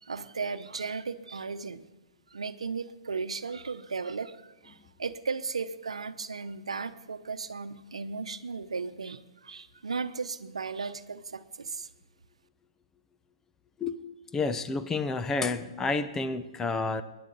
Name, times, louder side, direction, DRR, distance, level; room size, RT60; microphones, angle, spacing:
voice 1, 0.0-1.9 2.3-4.4 4.6-11.9, right 4 dB, 85° right, 11 dB, 0.9 m, -36 dB
voice 2, 14.3-17.0, left 3 dB, 15° left, 10 dB, 0.8 m, -30 dB
20.0 x 10.5 x 4.1 m, 1.1 s
hypercardioid pair, 125°, 3 cm